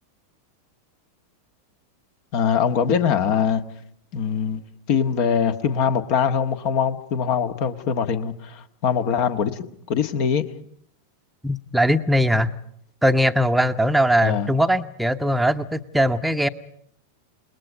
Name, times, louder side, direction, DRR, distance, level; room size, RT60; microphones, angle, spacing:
voice 1, 2.3-3.6 4.1-4.6 4.9-9.6 9.9-10.4 14.2-14.5, left 7 dB, 45° left, 9 dB, 1.6 m, -22 dB
voice 2, 11.4-12.5 13.0-16.5, equal, 5° right, 8 dB, 1.0 m, -20 dB
29.0 x 20.5 x 5.2 m, 0.67 s
figure-of-eight pair, 90°, 0 cm